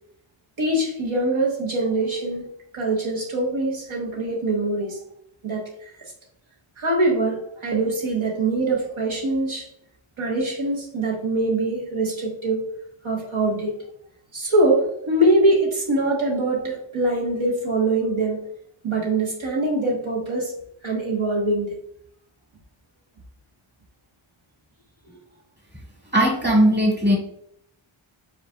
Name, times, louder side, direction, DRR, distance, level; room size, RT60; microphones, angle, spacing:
voice 1, 0.6-2.5 2.7-5.0 5.4-5.9 6.8-9.7 10.2-12.6 13.0-13.8 14.3-18.4 18.8-20.5 20.8-21.7, right 2 dB, 70° right, -2 dB, 1.3 m, -23 dB
voice 2, 26.1-27.2, equal, 20° right, -1 dB, 1.8 m, -18 dB
5.0 x 4.1 x 2.3 m, 0.72 s
cardioid pair, 50°, 50 cm